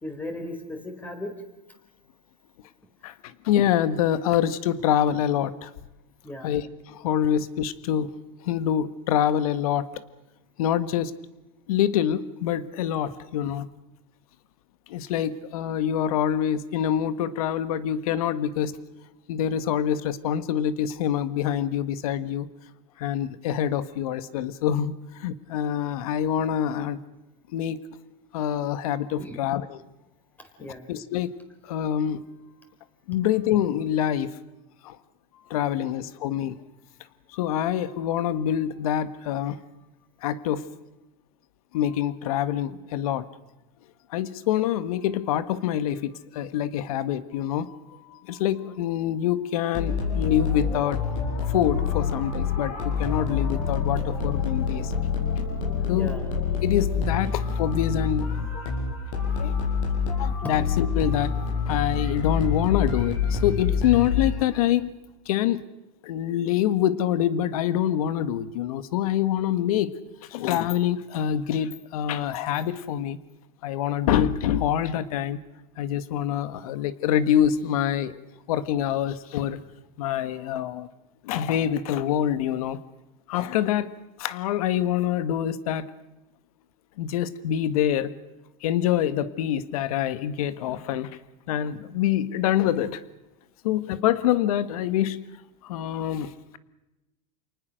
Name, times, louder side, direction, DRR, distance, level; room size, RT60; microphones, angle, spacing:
voice 1, 0.0-1.3 6.2-6.5 29.1-29.4 30.6-30.9 55.9-56.2, left 1 dB, 10° left, 6 dB, 4.2 m, -36 dB
voice 2, 3.0-5.7 6.4-8.2 8.4-9.9 10.6-11.1 11.7-13.7 14.9-18.8 19.3-22.5 23.0-27.0 27.5-27.8 28.3-29.8 30.9-31.4 31.6-32.2 33.1-34.3 34.8-35.0 35.5-36.6 37.3-39.6 40.2-40.7 41.7-43.3 44.1-51.1 51.5-54.9 55.9-56.2 56.6-58.3 59.4-59.6 60.2-61.3 61.7-64.9 65.3-65.6 66.0-69.9 70.2-73.2 73.6-75.4 75.8-78.2 78.5-79.6 80.0-80.9 81.2-82.8 83.3-83.9 84.2-85.9 87.0-88.1 88.6-91.2 91.5-93.0 93.6-95.2 95.6-96.6, left 10 dB, 85° left, 14 dB, 1.6 m, -26 dB
sound 1, 49.7-64.7, left 6 dB, 60° left, 7.5 m, -27 dB
29.0 x 19.5 x 6.5 m, 0.98 s
supercardioid pair, 155°, 18 cm